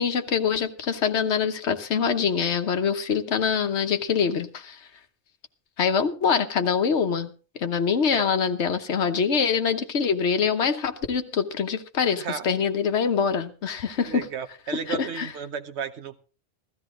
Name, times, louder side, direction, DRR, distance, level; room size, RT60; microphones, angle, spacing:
voice 1, 0.0-4.8 5.8-7.3 7.6-14.2 14.9-15.3, left 6 dB, 80° left, 7 dB, 1.3 m, -24 dB
voice 2, 12.1-12.5 14.0-16.2, right 7 dB, 75° right, 9 dB, 1.2 m, -34 dB
15.5 x 13.0 x 3.7 m, 0.35 s
omnidirectional pair, 1.1 m